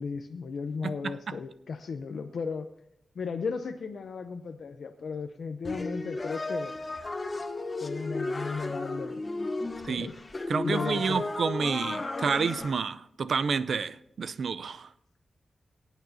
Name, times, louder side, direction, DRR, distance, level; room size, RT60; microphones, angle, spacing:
voice 1, 0.0-2.7 3.2-6.7 7.8-9.2 9.9-10.2 10.6-11.2, left 5 dB, 85° left, 0.6 m, -35 dB
voice 2, 0.8-1.2 9.8-10.1 10.5-14.9, right 5 dB, 75° right, 0.5 m, -29 dB
sound 1, 5.6-12.7, left 2 dB, 35° left, 1.0 m, -34 dB
22.0 x 9.1 x 2.7 m
wide cardioid pair, 85°, 0 cm